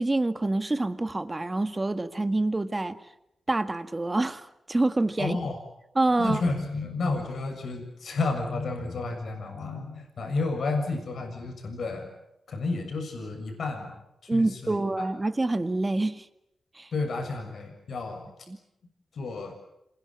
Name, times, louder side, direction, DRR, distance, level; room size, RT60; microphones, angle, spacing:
voice 1, 0.0-3.0 3.5-5.4 6.0-6.4 14.3-16.3 16.8-16.9 18.5-18.6, right 2 dB, 20° right, 10 dB, 1.9 m, -26 dB
voice 2, 5.2-5.6 6.2-12.1 12.5-14.0 14.2-15.1 16.9-18.3 19.1-19.5, left 3 dB, 70° left, 4 dB, 7.0 m, -31 dB
27.5 x 21.5 x 9.8 m, 0.82 s
cardioid pair, 80°, 0 cm